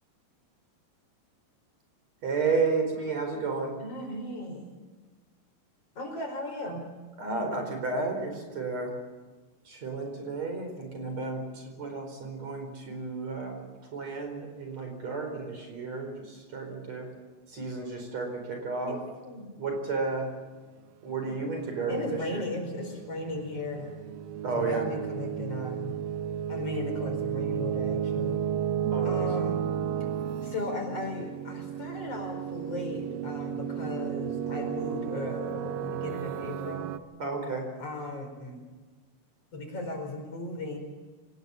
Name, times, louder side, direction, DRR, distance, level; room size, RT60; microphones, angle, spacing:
voice 1, 2.2-3.7 7.2-9.0 9.7-17.1 17.5-19.0 19.6-20.3 21.0-22.4 24.4-24.9 28.9-29.3 37.2-37.7, right 4 dB, 50° right, 4 dB, 5.7 m, -32 dB
voice 2, 3.8-4.8 6.0-6.8 18.8-19.5 21.9-24.0 24.5-25.9 26.5-28.4 29.0-29.6 30.4-36.9 37.8-38.7 39.5-40.8, left 2 dB, 45° left, 3 dB, 5.7 m, -36 dB
sound 1, 22.1-37.0, right 9 dB, 85° right, 2.7 m, -33 dB
25.5 x 18.5 x 7.1 m, 1.3 s
omnidirectional pair, 4.0 m